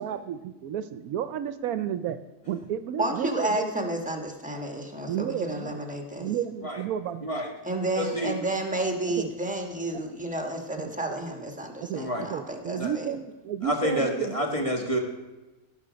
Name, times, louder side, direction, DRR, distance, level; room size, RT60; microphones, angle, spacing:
voice 1, 0.0-2.2 2.5-3.7 5.1-5.8 6.2-7.3 9.2-9.3 9.9-10.0 10.8-10.9 11.8-14.4, right 9 dB, 75° right, 12 dB, 1.0 m, -32 dB
voice 2, 3.0-6.3 7.6-13.1, right 1 dB, 5° right, 2 dB, 1.2 m, -31 dB
voice 3, 7.2-7.5 8.0-8.3 11.9-12.3 12.8-12.9 13.6-15.0, equal, 25° left, 1 dB, 1.6 m, -28 dB
16.5 x 5.9 x 5.1 m, 1.1 s
omnidirectional pair, 1.6 m